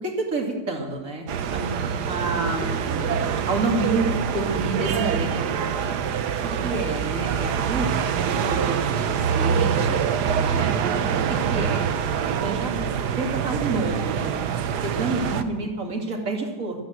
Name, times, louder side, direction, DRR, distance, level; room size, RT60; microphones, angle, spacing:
voice 1, 0.0-5.9 6.4-8.8 9.3-10.0 10.4-10.7 11.3-11.8 12.3-16.8, right 2 dB, 55° right, 1 dB, 3.0 m, -29 dB
sound 1, 1.3-15.4, right 7 dB, 80° right, 1.5 m, -25 dB
13.5 x 13.0 x 7.9 m, 1.2 s
omnidirectional pair, 1.7 m